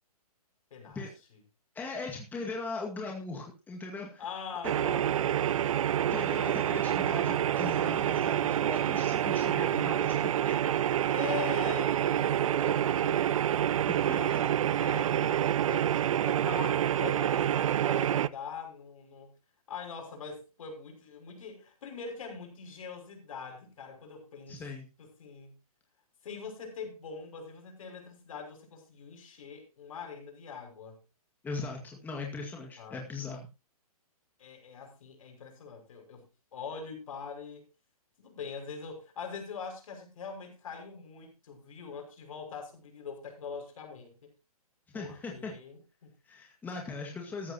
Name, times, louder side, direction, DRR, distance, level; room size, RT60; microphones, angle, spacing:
voice 1, 0.7-1.1 4.2-5.5 6.4-6.7 11.1-14.4 14.8-19.3 19.7-24.6 25.0-25.5 26.2-31.0 32.8-33.3 34.4-36.2 36.5-37.7 38.2-44.3 44.9-46.1, left 6 dB, 60° left, 5.7 m, -43 dB
voice 2, 1.7-4.2 5.4-10.5 13.9-14.4 24.5-24.9 31.4-33.5 44.9-45.5 46.3-47.5, left 3 dB, 10° left, 2.0 m, -39 dB
sound 1, 4.6-18.3, right 10 dB, 60° right, 0.6 m, -27 dB
14.0 x 13.0 x 2.9 m
hypercardioid pair, 145°, 20 cm